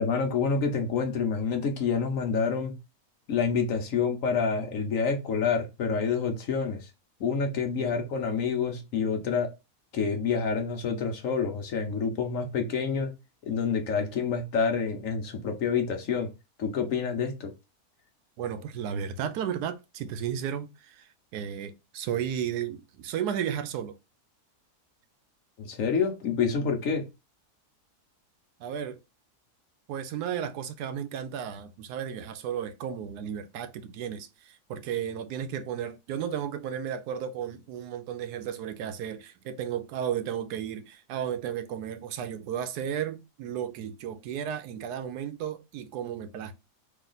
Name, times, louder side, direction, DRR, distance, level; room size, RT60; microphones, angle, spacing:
voice 1, 0.0-2.7 3.3-6.9 7.2-9.5 9.9-13.1 13.4-16.3 16.6-17.5 25.6-27.0, left 5 dB, 60° left, 1.1 m, -28 dB
voice 2, 18.4-24.0 28.6-29.0 29.9-46.5, right 9 dB, 80° right, 1.1 m, -34 dB
3.1 x 2.8 x 3.9 m
omnidirectional pair, 1.7 m